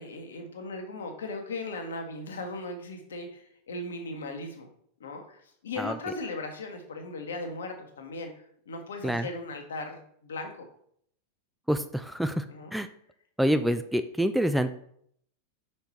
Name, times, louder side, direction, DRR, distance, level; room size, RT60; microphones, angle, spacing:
voice 1, 0.0-4.7 5.0-10.7 12.5-12.7, left 2 dB, 65° left, 5 dB, 1.1 m, -38 dB
voice 2, 11.7-12.5 12.7-12.9 13.4-14.7, equal, ahead, 10 dB, 0.3 m, -26 dB
5.7 x 4.4 x 4.4 m, 0.67 s
figure-of-eight pair, 90°, 0 cm